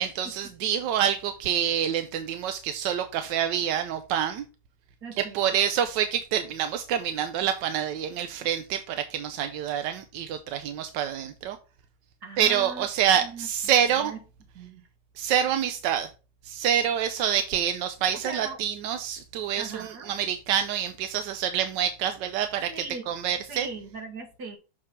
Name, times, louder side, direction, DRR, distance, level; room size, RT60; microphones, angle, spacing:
voice 1, 0.0-4.4 5.2-11.6 12.4-14.1 15.2-16.1 16.4-22.7 23.1-23.7, right 9 dB, 90° right, 1.3 m, -27 dB
voice 2, 5.0-5.5 12.2-12.9 13.2-14.2 14.5-14.8 18.2-18.6 19.6-20.1 22.7-23.0 23.5-24.6, right 4 dB, 70° right, 2.2 m, -39 dB
6.6 x 3.6 x 5.4 m
omnidirectional pair, 1.9 m